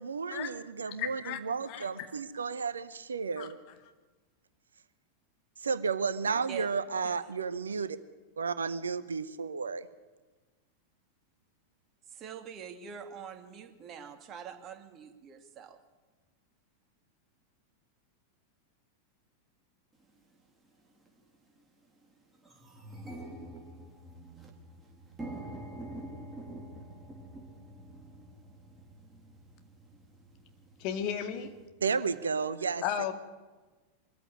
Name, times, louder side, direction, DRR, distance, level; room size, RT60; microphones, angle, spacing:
voice 1, 0.0-3.6 5.6-8.0 8.4-9.9 31.8-32.8, right 5 dB, 70° right, 14 dB, 0.9 m, -32 dB
voice 2, 0.9-1.4 1.7-1.9 3.4-3.5 30.8-31.5 32.8-33.1, left 9 dB, 45° left, 6 dB, 2.2 m, -34 dB
voice 3, 6.3-6.7 7.0-7.1 12.1-15.8, right 8 dB, 30° right, 7 dB, 2.3 m, -44 dB
sound 1, 20.1-20.2 21.0-21.2 21.6-21.7 22.0-31.7, right 1 dB, 10° right, 3.3 m, -47 dB
23.0 x 14.5 x 9.5 m, 1.3 s
figure-of-eight pair, 90°, 0 cm